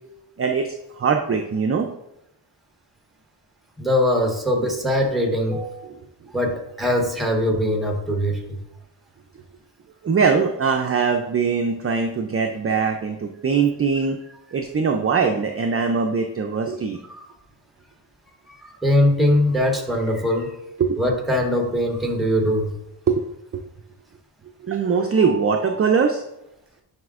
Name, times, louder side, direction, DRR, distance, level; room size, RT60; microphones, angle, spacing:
voice 1, 0.4-1.9 6.0-6.1 10.0-14.2 14.5-17.0 20.8-21.0 23.1-23.3 23.5-23.6 24.6-26.2, right 5 dB, 35° right, 4 dB, 0.4 m, -21 dB
voice 2, 3.8-5.9 6.3-8.6 17.1-17.3 18.5-20.6 21.0-22.7, left 1 dB, ahead, 1 dB, 1.0 m, -22 dB
9.5 x 4.8 x 2.4 m, 0.86 s
wide cardioid pair, 145°, 44 cm